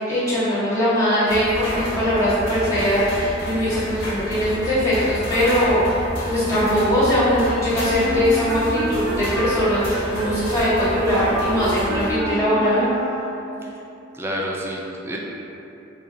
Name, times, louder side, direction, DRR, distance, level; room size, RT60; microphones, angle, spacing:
voice 1, 0.1-6.0 6.3-9.8 10.1-12.9, equal, 15° left, -12 dB, 1.2 m, -21 dB
sound 1, 1.3-12.1, equal, 55° left, 1.4 m, -30 dB
Wind instrument woodwind instrument, 7.9-13.6, right 2 dB, 90° right, 0.3 m, -29 dB
voice 2, 14.1-15.2, equal, 10° right, -2 dB, 0.3 m, -29 dB
4.7 x 2.7 x 2.5 m, 2.9 s
head